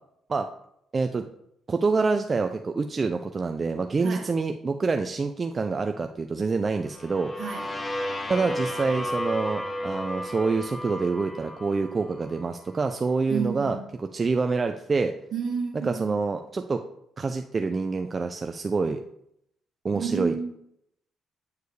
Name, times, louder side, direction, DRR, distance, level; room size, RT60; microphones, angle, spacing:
voice 1, 0.9-1.2 1.7-7.3 8.3-13.8 14.1-15.1 15.8-16.8 17.2-19.0 19.8-20.3, right 4 dB, 35° right, 0.4 m, -26 dB
sound 1, 6.9-12.7, left 1 dB, 20° left, 0.8 m, -33 dB
voice 2, 7.4-7.7 13.3-13.8 15.3-16.2 19.9-20.5, right 6 dB, 60° right, 1.4 m, -31 dB
8.2 x 4.6 x 3.2 m
cardioid pair, 90°, 0 cm